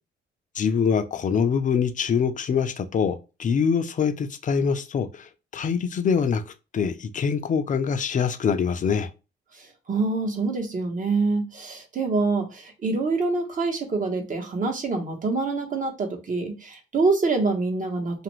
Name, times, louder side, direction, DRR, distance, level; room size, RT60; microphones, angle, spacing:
voice 1, 0.6-9.1, left 6 dB, 40° left, 0.5 m, -24 dB
voice 2, 9.5-18.2, right 3 dB, 40° right, 0.9 m, -26 dB
2.5 x 2.4 x 3.0 m
cardioid pair, 90°, 20 cm